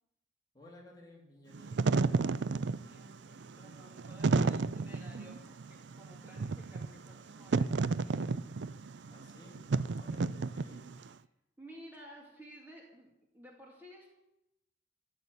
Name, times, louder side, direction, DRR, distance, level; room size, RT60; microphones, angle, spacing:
voice 1, 0.5-1.9 9.1-10.9, left 1 dB, 20° left, -2 dB, 2.9 m, -56 dB
Wind / Fire, 1.5-11.1, right 4 dB, 75° right, 0.5 m, -32 dB
voice 2, 2.1-8.4 10.1-10.2 11.6-14.1, equal, 10° right, -2 dB, 2.4 m, -55 dB
14.0 x 6.9 x 9.5 m, 0.88 s
head